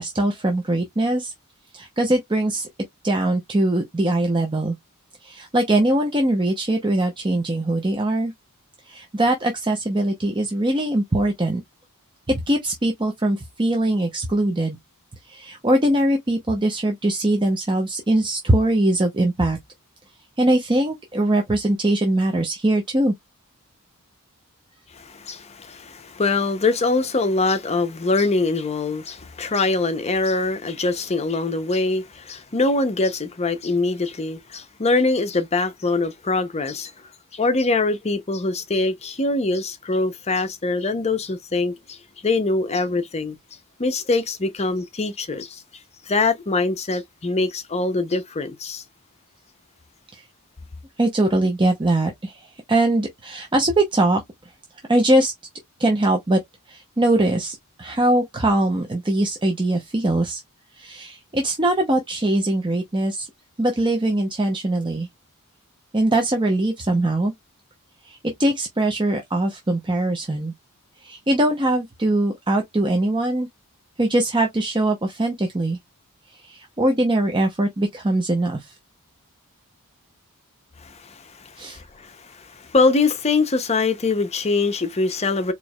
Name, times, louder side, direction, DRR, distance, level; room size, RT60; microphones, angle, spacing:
voice 1, 0.0-1.3 1.7-2.7 3.0-4.8 5.2-8.3 8.9-11.6 12.3-14.8 15.3-19.6 20.4-23.1 50.1-50.2 51.0-54.2 54.9-55.3 55.8-56.4 56.7-60.4 60.8-63.3 63.6-65.1 65.9-67.3 68.1-70.5 71.0-73.5 74.0-75.8 76.4-78.7 81.6-81.8, right 1 dB, 20° right, 0.7 m, -21 dB
voice 2, 24.9-36.9 37.3-42.0 42.2-43.4 43.8-45.6 46.1-48.8 80.8-85.5, left 3 dB, 30° left, 0.7 m, -23 dB
4.5 x 3.0 x 2.3 m
head